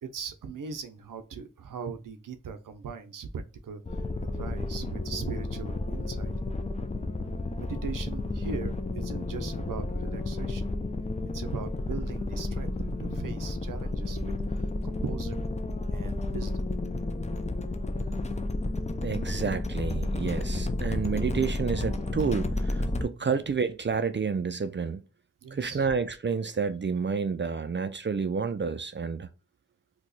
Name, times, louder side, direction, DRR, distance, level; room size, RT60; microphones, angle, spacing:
voice 1, 0.0-4.0 4.3-6.4 7.6-10.7 11.3-15.5 15.9-16.7 20.9-21.0 23.2-23.4 25.4-25.9, right 5 dB, 80° right, 0.6 m, -39 dB
sound 1, 3.9-23.1, left 2 dB, 20° left, 0.5 m, -31 dB
voice 2, 19.0-25.0 25.5-29.3, right 5 dB, 35° right, 0.4 m, -30 dB
2.7 x 2.3 x 3.9 m
cardioid pair, 45°, 32 cm